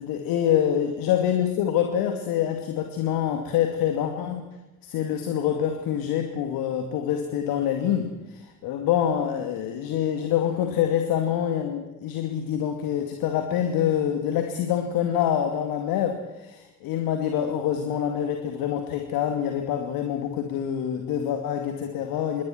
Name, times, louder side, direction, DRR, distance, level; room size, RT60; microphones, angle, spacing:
voice 1, 0.0-4.4 4.8-22.4, left 9 dB, 50° left, 5 dB, 2.5 m, -26 dB
27.0 x 22.5 x 4.6 m, 1.0 s
figure-of-eight pair, 60°, 45 cm